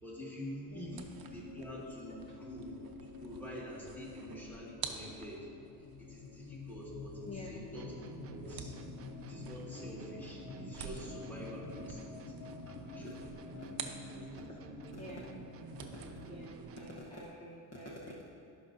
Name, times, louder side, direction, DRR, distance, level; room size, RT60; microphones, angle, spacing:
voice 1, 0.0-2.7 3.0-5.5 6.0-8.0 8.3-8.8 9.3-12.4 12.6-13.2 14.1-14.4, equal, 5° left, -5 dB, 1.7 m, -47 dB
sound 1, 0.7-16.6, left 6 dB, 90° left, 0.7 m, -50 dB
voice 2, 0.7-1.0 7.2-7.6 13.0-13.1 13.5-13.9 14.9-15.3 16.3-18.3, left 1 dB, 35° left, -5 dB, 1.0 m, -47 dB
sound 2, 0.9-14.6 14.9-17.3, right 7 dB, 50° right, 0.8 m, -51 dB
sound 3, 7.7-17.2, right 6 dB, 35° right, 0.4 m, -50 dB
16.5 x 5.6 x 2.6 m, 2.7 s
cardioid pair, 130°, 45 cm